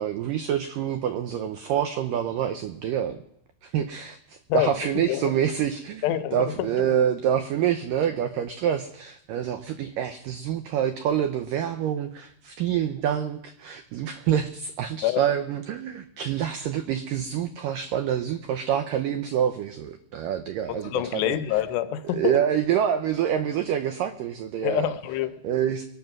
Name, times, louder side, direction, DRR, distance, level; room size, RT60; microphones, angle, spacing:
voice 1, 0.0-3.2 3.6-21.4 22.1-24.9 25.4-25.8, right 9 dB, 85° right, 9 dB, 1.9 m, -27 dB
voice 2, 6.0-6.5 15.0-15.2 20.7-22.4 24.6-25.3, left 13 dB, 80° left, 11 dB, 2.9 m, -26 dB
23.0 x 8.0 x 6.0 m, 0.73 s
omnidirectional pair, 4.9 m